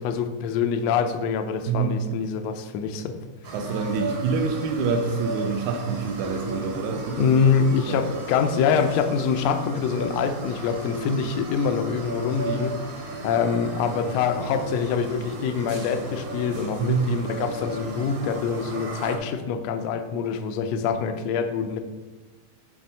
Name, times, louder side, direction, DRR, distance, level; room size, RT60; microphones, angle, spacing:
voice 1, 0.0-3.2 7.2-21.8, left 6 dB, 80° left, 7 dB, 1.5 m, -25 dB
voice 2, 1.7-2.0 3.5-7.4 7.9-8.0 16.8-17.1, right 5 dB, 80° right, 3 dB, 2.0 m, -26 dB
sound 1, 3.4-19.2, right 2 dB, 55° right, 1.4 m, -35 dB
8.7 x 3.6 x 5.4 m, 1.2 s
omnidirectional pair, 3.5 m